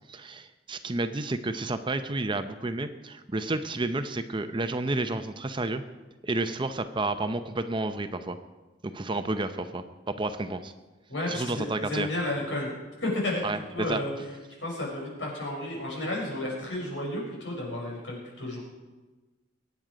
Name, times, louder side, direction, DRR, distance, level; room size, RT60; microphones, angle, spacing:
voice 1, 0.1-5.8 6.2-8.4 8.8-10.7 11.3-12.1 13.4-13.6 13.9-14.0, right 2 dB, 25° right, 9 dB, 0.7 m, -31 dB
voice 2, 11.1-12.7 13.0-14.1 14.6-18.6, left 1 dB, 80° left, -3 dB, 6.3 m, -32 dB
23.0 x 9.5 x 5.1 m, 1.2 s
head